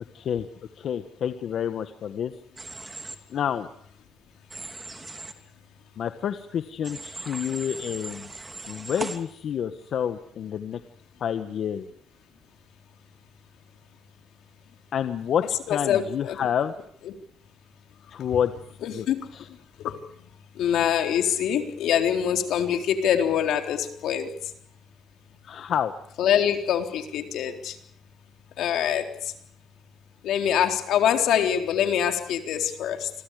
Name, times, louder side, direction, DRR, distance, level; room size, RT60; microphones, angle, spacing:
voice 1, 0.1-0.5 0.8-2.3 3.3-3.7 6.0-8.3 8.7-10.8 11.2-11.9 14.9-16.7 18.1-18.5 18.9-19.1 19.3-19.5 25.4-25.9, left 8 dB, 60° left, 9 dB, 1.5 m, -28 dB
Human voice / Train, 2.6-3.1 4.5-5.3 6.8-9.2, right 3 dB, 20° right, 3.2 m, -38 dB
voice 2, 15.7-16.4 17.0-17.1 18.8-19.3 19.8-20.0 20.6-24.4 26.2-27.8 28.6-29.3 30.2-33.1, left 9 dB, 80° left, 6 dB, 3.9 m, -24 dB
29.5 x 23.0 x 5.1 m, 0.66 s
cardioid pair, 140°, 0 cm